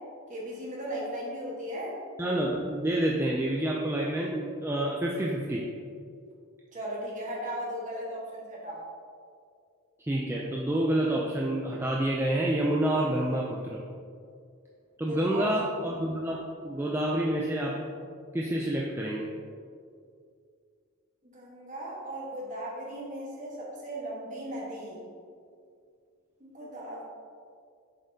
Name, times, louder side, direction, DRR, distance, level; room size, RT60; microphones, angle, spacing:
voice 1, 0.3-2.0 6.7-8.8 15.1-15.5 21.2-25.0 26.4-27.0, equal, 35° right, -4 dB, 1.3 m, -37 dB
voice 2, 2.2-5.6 10.1-13.8 15.0-17.8 18.3-19.3, right 1 dB, 10° right, -3 dB, 0.3 m, -28 dB
7.2 x 5.2 x 2.8 m, 2.3 s
head